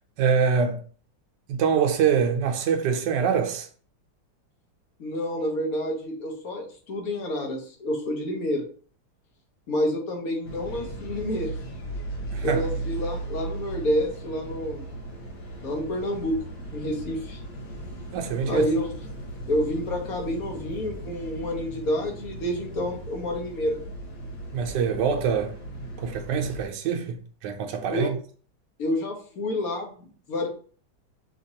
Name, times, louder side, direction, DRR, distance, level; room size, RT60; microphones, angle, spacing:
voice 1, 0.2-0.8 1.5-3.7 12.3-12.6 18.1-18.6 24.5-25.6 26.0-28.2, right 6 dB, 70° right, 1.2 m, -24 dB
voice 2, 5.0-8.7 9.7-11.5 12.4-14.9 15.6-17.4 18.5-18.9 19.5-23.8 27.9-28.1 28.8-29.9 30.3-30.5, left 1 dB, 55° left, 1.4 m, -28 dB
sound 1, 10.4-26.6, right 2 dB, 80° left, 2.0 m, -37 dB
5.8 x 2.9 x 2.8 m
omnidirectional pair, 2.1 m